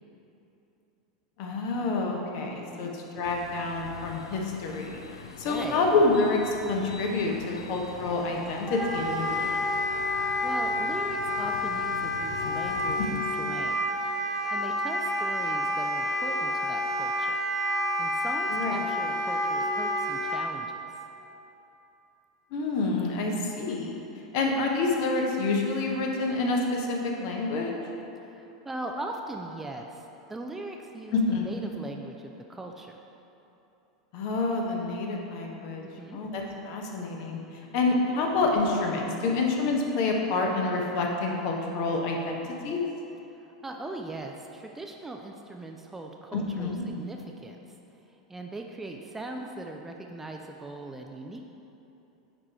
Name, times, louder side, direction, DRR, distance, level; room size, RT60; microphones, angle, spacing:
voice 1, 1.4-5.0 5.4-9.5 13.0-13.1 18.5-18.8 22.5-24.0 24.3-27.7 31.1-31.5 34.1-35.8 36.1-37.4 37.7-42.8 46.3-46.8, left 3 dB, 45° left, 1 dB, 1.0 m, -28 dB
sound 1, 3.2-13.2, left 5 dB, 70° left, 0.4 m, -43 dB
voice 2, 5.4-5.8 10.4-13.9 14.5-17.4 18.0-20.9 28.3-33.0 36.0-36.2 43.3-47.6 48.3-51.4, right 2 dB, 10° right, 2 dB, 0.4 m, -40 dB
Wind instrument woodwind instrument, 8.7-20.4, left 1 dB, 5° left, 1.2 m, -29 dB
9.4 x 3.7 x 4.3 m, 3.0 s
figure-of-eight pair, 85°, 3 cm